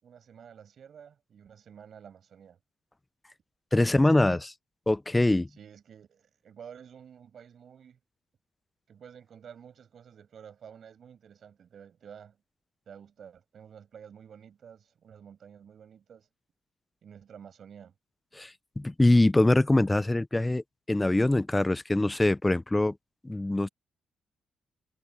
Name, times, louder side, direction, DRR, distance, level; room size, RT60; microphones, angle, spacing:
voice 1, 0.0-2.6 3.9-4.4 5.5-8.0 8.9-12.4 12.9-16.3 17.0-17.9, right 8 dB, 60° right, 6.2 m, -50 dB
voice 2, 3.7-4.4 4.9-5.5 18.3-20.6 20.9-22.9 23.2-23.7, left 2 dB, 15° left, 0.5 m, -23 dB
cardioid pair, 105°, 0 cm